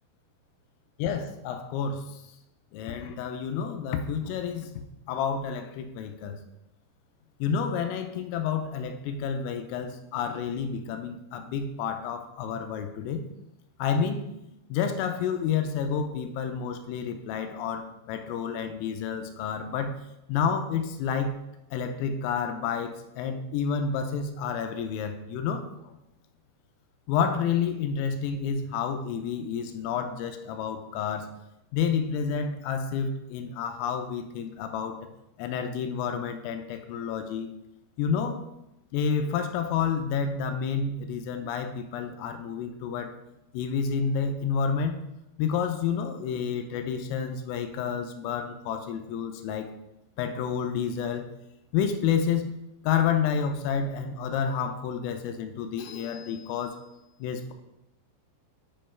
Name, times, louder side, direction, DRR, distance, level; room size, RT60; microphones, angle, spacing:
voice 1, 1.0-2.2 2.7-4.8 5.1-6.4 7.4-13.2 13.8-14.3 14.7-20.0 20.3-21.4 21.7-25.7 27.1-31.3 31.7-35.0 35.4-37.5 38.0-38.4 38.9-43.1 43.5-45.0 45.4-49.7 50.2-51.3 51.7-52.5 52.8-56.8 57.2-57.5, left 6 dB, 85° left, 6 dB, 3.3 m, -29 dB
10.0 x 5.4 x 4.4 m, 0.87 s
omnidirectional pair, 6.0 m